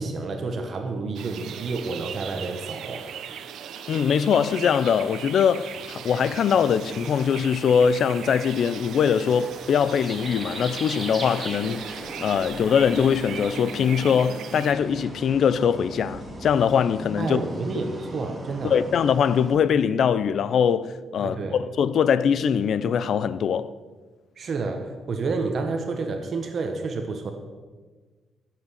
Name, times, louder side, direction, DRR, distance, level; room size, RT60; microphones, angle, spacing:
voice 1, 0.0-3.1 17.2-18.8 21.2-21.6 24.4-27.3, right 3 dB, 40° right, 1.4 m, -30 dB
sound 1, 1.1-14.7, right 8 dB, 75° right, 0.9 m, -39 dB
voice 2, 3.9-17.4 18.6-23.7, left 7 dB, 55° left, 0.6 m, -22 dB
sound 2, 5.7-19.6, right 1 dB, 10° right, 2.3 m, -39 dB
16.5 x 7.8 x 6.5 m
cardioid pair, 150°, 0 cm